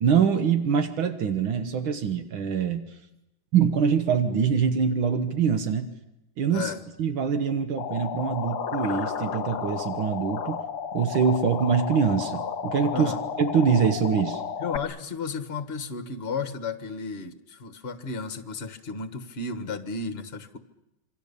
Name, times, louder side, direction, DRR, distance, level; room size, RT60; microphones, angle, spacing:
voice 1, 0.0-3.0 3.5-5.9 6.4-6.7 7.0-10.6 10.9-13.1 13.4-14.4, right 6 dB, 75° right, 8 dB, 2.0 m, -24 dB
voice 2, 6.5-6.8 12.9-13.2 14.6-20.6, left 4 dB, 35° left, 9 dB, 1.3 m, -33 dB
sound 1, 7.8-14.8, left 6 dB, 55° left, 1.5 m, -32 dB
27.5 x 24.0 x 6.9 m, 0.90 s
omnidirectional pair, 2.3 m